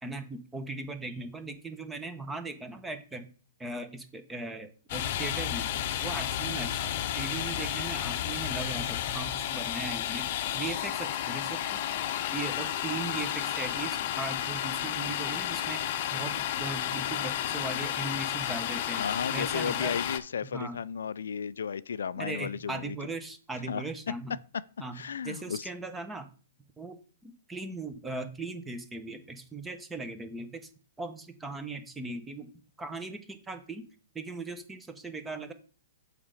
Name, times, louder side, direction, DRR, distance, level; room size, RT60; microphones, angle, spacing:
voice 1, 0.0-3.3 3.6-5.7 6.0-10.3 10.5-11.8 12.3-19.0 19.3-19.9 20.4-20.8 22.2-24.3 24.8-26.3 26.8-27.0 27.2-30.7 31.0-32.5 32.8-33.8 34.1-35.5, right 3 dB, 10° right, 1.1 m, -38 dB
Domestic sounds home sounds, 4.9-20.2, left 11 dB, 45° left, 0.8 m, -32 dB
voice 2, 19.0-23.0 23.7-23.8 24.9-25.7, left 7 dB, 75° left, 0.4 m, -34 dB
7.1 x 5.0 x 5.0 m
hypercardioid pair, 125°, 0 cm